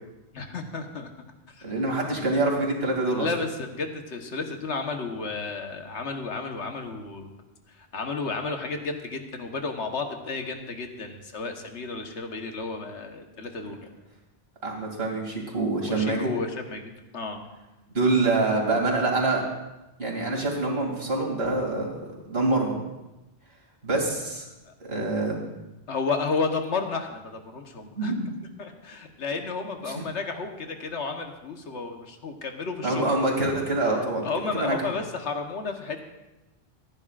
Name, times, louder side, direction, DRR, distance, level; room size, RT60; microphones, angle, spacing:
voice 1, 0.3-1.1 1.5-1.7 3.1-7.3 7.7-13.8 15.9-17.4 24.7-24.8 25.9-28.1 28.6-33.1 33.9-36.0, left 4 dB, 90° left, 4 dB, 1.5 m, -32 dB
voice 2, 1.6-3.3 14.6-16.3 17.9-19.4 20.0-22.0 22.3-22.8 23.8-24.4 24.8-25.5 28.0-28.3 32.8-34.2 34.5-34.9, right 2 dB, 60° right, -1 dB, 2.9 m, -25 dB
26.0 x 10.5 x 2.5 m, 1.0 s
omnidirectional pair, 1.1 m